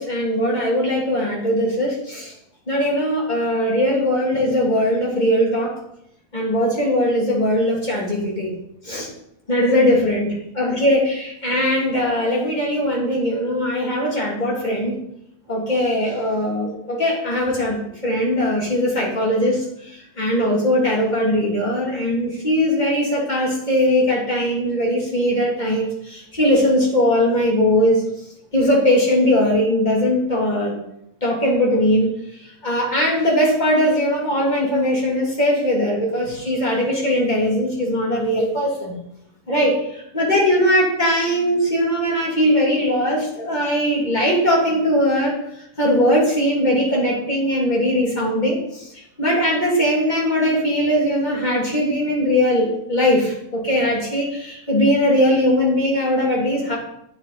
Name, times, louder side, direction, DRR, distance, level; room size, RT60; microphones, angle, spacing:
voice 1, 0.0-2.3 2.7-5.7 6.3-8.5 8.8-9.1 9.5-15.0 15.5-28.0 28.5-30.7 31.2-32.1 32.6-38.9 39.5-45.4 45.8-56.8, equal, 25° left, -4 dB, 3.0 m, -20 dB
8.9 x 7.7 x 4.1 m, 0.76 s
omnidirectional pair, 1.7 m